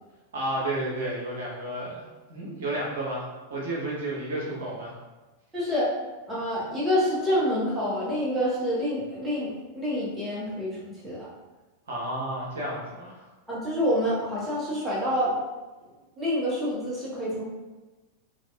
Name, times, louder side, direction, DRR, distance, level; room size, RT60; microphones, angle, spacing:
voice 1, 0.3-4.9 11.9-13.3, right 1 dB, 60° right, -5 dB, 0.8 m, -32 dB
voice 2, 5.5-5.9 6.3-11.3 13.5-15.4 16.2-17.4, equal, 10° right, -8 dB, 1.2 m, -27 dB
3.9 x 2.8 x 2.4 m, 1.2 s
figure-of-eight pair, 90°, 0 cm